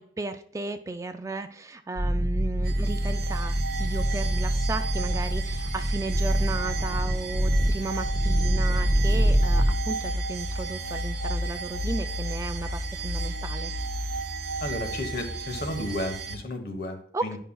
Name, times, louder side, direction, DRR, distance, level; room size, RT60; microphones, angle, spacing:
voice 1, 0.0-13.7 17.1-17.4, right 3 dB, 20° right, 8 dB, 0.3 m, -34 dB
sound 1, 2.0-9.7, equal, 20° left, 1.3 m, -25 dB
sound 2, 2.6-16.3, right 1 dB, 60° right, 0.8 m, -33 dB
voice 2, 14.6-17.4, left 1 dB, 60° left, 6 dB, 1.1 m, -33 dB
10.0 x 5.5 x 2.3 m, 0.63 s
head